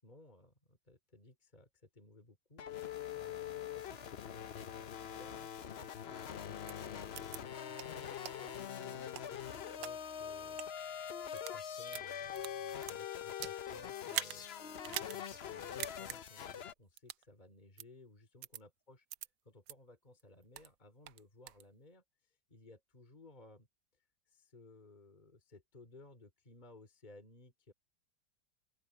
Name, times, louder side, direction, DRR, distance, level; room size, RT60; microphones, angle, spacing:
voice 1, 0.0-10.6 10.9-14.5 14.8-19.1 19.4-23.7 24.3-27.7, left 2 dB, 25° left, 3.0 m, -59 dB
sound 1, 2.6-16.7, left 9 dB, 55° left, 0.7 m, -43 dB
sound 2, 6.7-6.8 7.2-7.4 7.8-7.9 8.3-8.4 8.9-9.9 10.5-10.7 11.2-11.6 11.9-13.6 14.1-14.4 14.8-15.2 15.5-15.6 15.8-16.2 17.0-17.2 17.8-17.9 18.4-18.6 19.1-19.3 19.7-19.8 20.2-20.7 21.1-21.6, right 14 dB, 80° right, 1.4 m, -42 dB
open air
omnidirectional pair, 2.0 m